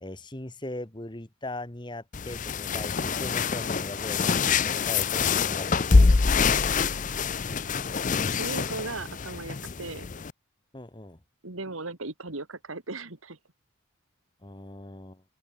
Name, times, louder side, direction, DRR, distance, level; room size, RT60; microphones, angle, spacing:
voice 1, 0.0-6.1 10.7-11.2 14.4-15.2, left 1 dB, 20° left, 1.4 m, -39 dB
sound 1, 2.1-10.3, left 4 dB, 40° left, 0.6 m, -25 dB
voice 2, 6.8-7.2 8.3-10.1 11.4-13.4, right 3 dB, 85° right, 2.4 m, -37 dB
open air
head